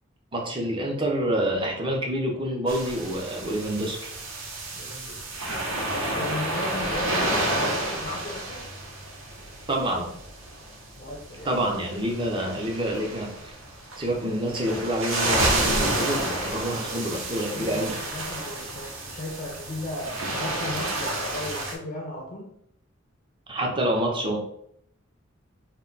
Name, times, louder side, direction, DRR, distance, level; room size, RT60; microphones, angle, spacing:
voice 1, 0.3-4.1 9.7-10.1 11.4-13.5 14.0-18.0 23.5-24.4, right 1 dB, 25° right, 0 dB, 0.5 m, -27 dB
sound 1, 2.7-21.7, right 1 dB, 85° right, 0.6 m, -30 dB
voice 2, 4.7-5.2 6.1-8.7 11.0-11.5 16.6-17.0 17.5-22.5, left 1 dB, 40° left, 0 dB, 0.4 m, -36 dB
2.1 x 2.1 x 3.8 m, 0.73 s
head